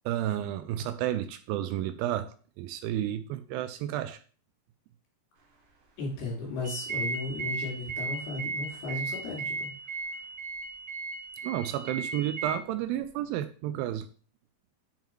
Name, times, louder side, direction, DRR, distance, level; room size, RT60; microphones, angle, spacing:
voice 1, 0.1-4.2 11.4-14.1, right 12 dB, 80° right, 11 dB, 2.2 m, -31 dB
voice 2, 6.0-9.7, left 3 dB, 80° left, -2 dB, 4.7 m, -35 dB
sound 1, 6.6-12.5, right 3 dB, 65° right, 1.3 m, -35 dB
8.9 x 3.8 x 4.5 m, 0.41 s
omnidirectional pair, 4.4 m